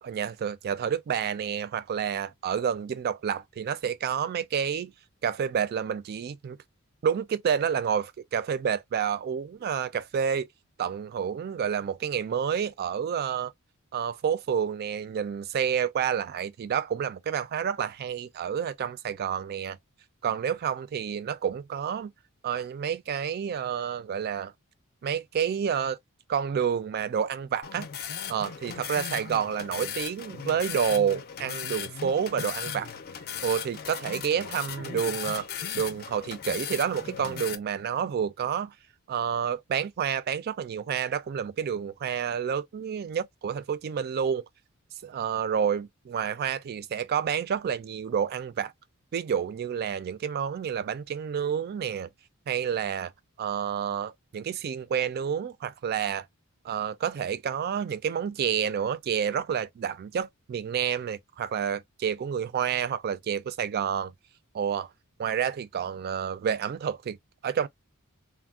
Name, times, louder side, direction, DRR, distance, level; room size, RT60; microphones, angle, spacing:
voice 1, 0.0-4.9 5.2-6.6 7.0-10.5 10.8-13.5 13.9-19.8 20.2-22.1 22.4-24.5 25.0-26.0 26.3-27.9 28.3-32.9 33.4-35.5 35.7-38.7 39.1-44.4 45.0-48.7 49.1-52.1 52.5-53.1 53.4-56.3 56.6-64.1 64.5-64.9 65.2-67.2 67.4-67.7, right 8 dB, 45° right, 0.3 m, -29 dB
sound 1, 27.6-37.6, left 8 dB, 45° left, 0.5 m, -37 dB
3.3 x 2.1 x 2.3 m
head